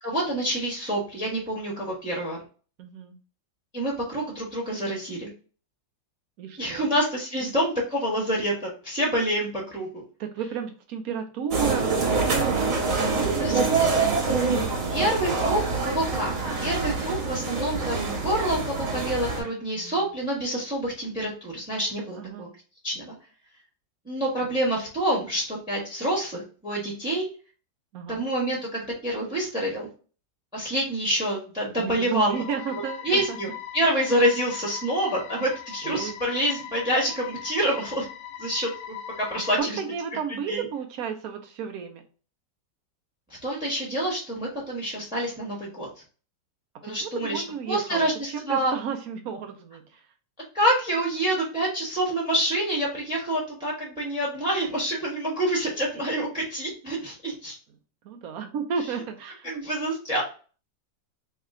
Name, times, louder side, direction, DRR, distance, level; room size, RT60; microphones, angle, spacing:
voice 1, 0.0-2.4 3.7-5.3 6.6-10.0 13.4-13.8 14.9-22.5 22.8-23.1 24.0-27.3 28.1-29.9 30.5-32.3 33.0-38.0 38.4-39.7 40.3-40.6 43.4-45.9 46.8-47.4 47.7-48.7 50.5-57.5 59.4-60.2, right 1 dB, 5° right, -3 dB, 1.1 m, -27 dB
voice 2, 2.8-3.2 6.4-6.9 10.2-14.3 19.7-20.1 22.2-22.5 27.9-28.2 31.8-33.4 35.8-36.2 39.3-42.0 46.8-50.0 58.0-59.5, right 7 dB, 70° right, 5 dB, 0.9 m, -33 dB
sound 1, 11.5-19.4, right 4 dB, 50° right, 1.4 m, -25 dB
sound 2, 32.3-39.6, left 9 dB, 90° left, 1.4 m, -40 dB
3.2 x 2.8 x 3.6 m, 0.38 s
omnidirectional pair, 2.0 m